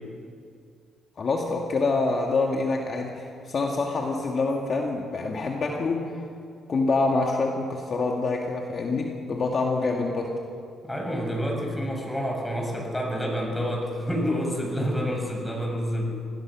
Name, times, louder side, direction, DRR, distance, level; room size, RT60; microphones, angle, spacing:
voice 1, 1.2-6.1 6.7-10.4, left 3 dB, 45° left, 1 dB, 2.3 m, -26 dB
voice 2, 10.8-16.1, equal, 10° left, 0 dB, 7.5 m, -28 dB
27.0 x 18.0 x 6.4 m, 2.4 s
cardioid pair, 90°, 0 cm